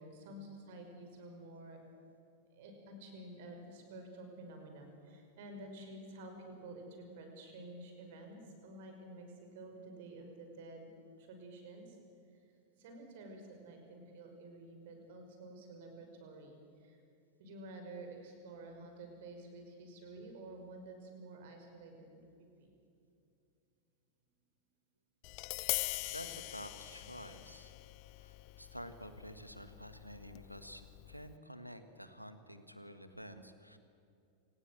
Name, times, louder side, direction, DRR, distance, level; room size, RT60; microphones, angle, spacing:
voice 1, 0.0-1.8 2.5-10.9 11.2-12.0 12.3-12.4 12.8-17.0 17.4-22.7, right 2 dB, 55° right, 4 dB, 5.7 m, -51 dB
Tap, 25.2-31.4, left 23 dB, 45° left, 0.6 m, -43 dB
voice 2, 26.0-27.7 28.2-33.8, equal, 90° right, 10 dB, 1.7 m, -50 dB
28.0 x 19.0 x 7.7 m, 2.6 s
figure-of-eight pair, 90°, 0 cm